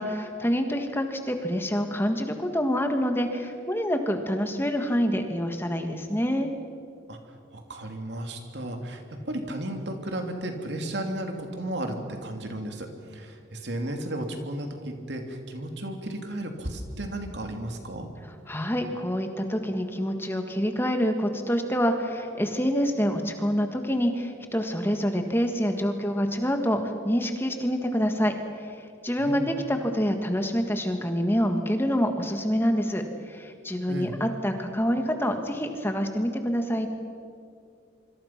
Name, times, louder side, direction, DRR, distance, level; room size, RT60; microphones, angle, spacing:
voice 1, 0.0-6.5 18.5-36.9, equal, 10° left, 5 dB, 1.6 m, -27 dB
voice 2, 7.1-18.1 29.2-29.5 33.9-34.1, right 1 dB, 60° right, 4 dB, 2.8 m, -34 dB
26.0 x 25.5 x 5.9 m, 2.4 s
head